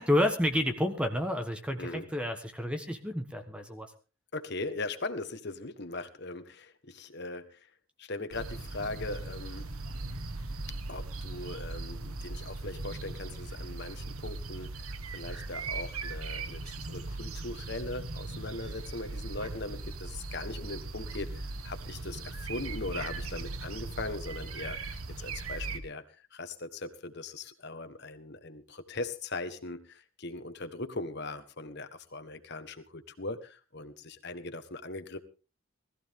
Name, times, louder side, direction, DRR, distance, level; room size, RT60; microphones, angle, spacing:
voice 1, 0.0-3.9, left 1 dB, 5° right, 6 dB, 1.3 m, -30 dB
voice 2, 4.3-7.6 8.0-9.7 10.9-26.0 26.3-35.2, left 2 dB, 50° left, 10 dB, 1.4 m, -40 dB
sound 1, 8.3-25.8, right 3 dB, 85° right, 1.6 m, -39 dB
19.5 x 14.5 x 3.7 m, 0.34 s
head